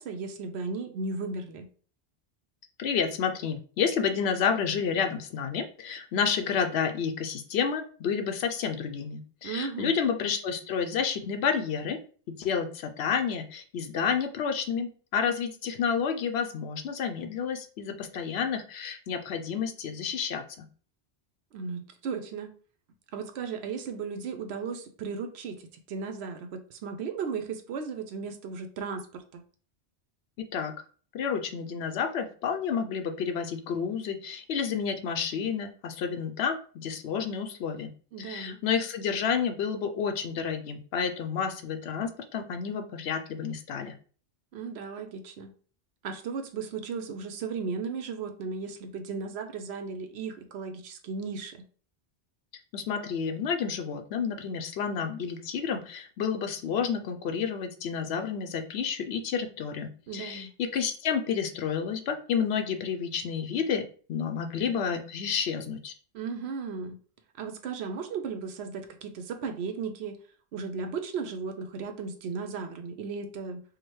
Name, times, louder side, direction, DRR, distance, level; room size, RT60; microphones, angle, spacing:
voice 1, 0.0-1.7 9.4-9.9 21.5-22.5 23.1-29.4 38.1-38.6 44.5-45.5 46.0-51.6 60.1-60.5 66.1-67.0 67.4-70.2 70.5-73.6, right 5 dB, 75° right, 7 dB, 0.8 m, -35 dB
voice 2, 2.8-12.0 12.3-20.7 30.4-30.7 31.1-37.9 38.2-44.0 52.7-65.9, left 6 dB, 75° left, 6 dB, 0.8 m, -30 dB
4.7 x 2.1 x 3.1 m, 0.42 s
omnidirectional pair, 1.1 m